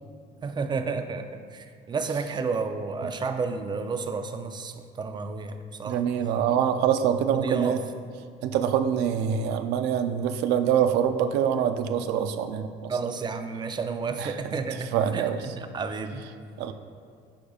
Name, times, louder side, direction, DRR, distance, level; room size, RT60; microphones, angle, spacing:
voice 1, 0.4-6.0 7.3-7.9 12.9-16.2, right 4 dB, 25° right, 8 dB, 0.4 m, -31 dB
voice 2, 5.9-7.8 8.4-12.9 14.2-14.6 14.9-15.4 16.6-16.7, right 8 dB, 90° right, 9 dB, 0.4 m, -25 dB
8.5 x 5.0 x 2.4 m, 2.3 s
cardioid pair, 110°, 17 cm